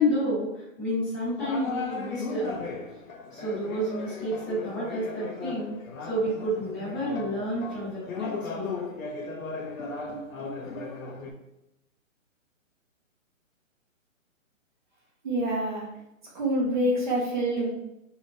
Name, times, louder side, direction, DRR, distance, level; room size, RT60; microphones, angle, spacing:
voice 1, 0.0-2.6 3.3-5.7 6.1-8.7, equal, ahead, -20 dB, 1.4 m, -30 dB
sound 1, 1.4-11.3, left 3 dB, 80° left, 0.7 m, -36 dB
voice 2, 15.2-15.9 16.3-17.7, right 1 dB, 35° right, -4 dB, 0.9 m, -26 dB
3.3 x 2.5 x 2.4 m, 0.89 s
hypercardioid pair, 175°, 40 cm